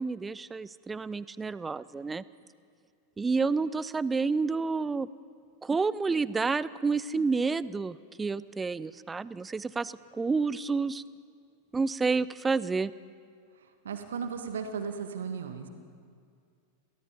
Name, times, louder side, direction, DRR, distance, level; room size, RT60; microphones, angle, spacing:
voice 1, 0.0-2.2 3.2-5.1 5.6-11.0 11.7-12.9, right 4 dB, 15° right, 19 dB, 0.5 m, -29 dB
voice 2, 13.8-15.7, right 6 dB, 65° right, 6 dB, 2.0 m, -35 dB
28.5 x 17.5 x 5.2 m, 2.3 s
figure-of-eight pair, 90°, 0 cm